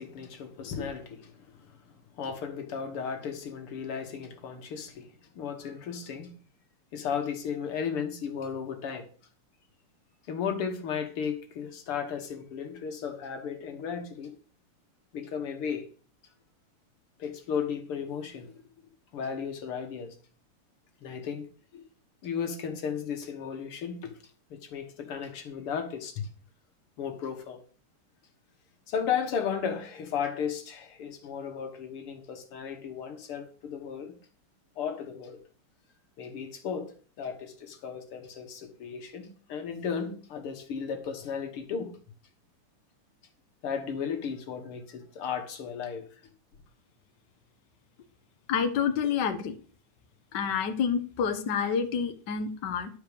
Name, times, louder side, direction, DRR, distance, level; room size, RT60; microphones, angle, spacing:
voice 1, 0.0-1.7 2.2-5.1 5.4-6.3 6.9-9.1 10.3-14.3 15.1-15.9 17.2-18.5 19.1-20.1 21.0-21.5 21.7-21.8 22.2-24.1 24.5-26.3 27.0-27.6 28.9-34.1 34.8-35.4 36.2-36.9 37.2-41.9 43.6-46.0, left 7 dB, 80° left, 2.4 m, -35 dB
voice 2, 48.5-49.5 50.3-52.9, left 7 dB, 60° left, 1.5 m, -28 dB
11.5 x 4.9 x 6.9 m
omnidirectional pair, 2.4 m